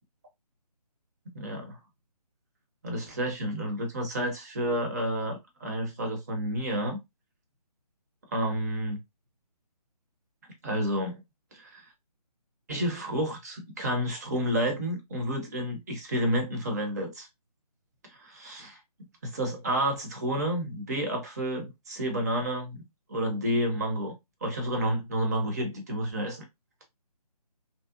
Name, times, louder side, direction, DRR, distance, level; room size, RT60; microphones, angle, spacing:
voice 1, 1.3-1.8 2.8-7.0 8.3-9.0 10.6-11.2 11.5-11.8 12.7-17.3 18.1-22.8 23.1-24.1 24.4-26.4, equal, 25° right, 0.6 m, -30 dB
2.7 x 2.1 x 2.3 m
figure-of-eight pair, 160°, 21 cm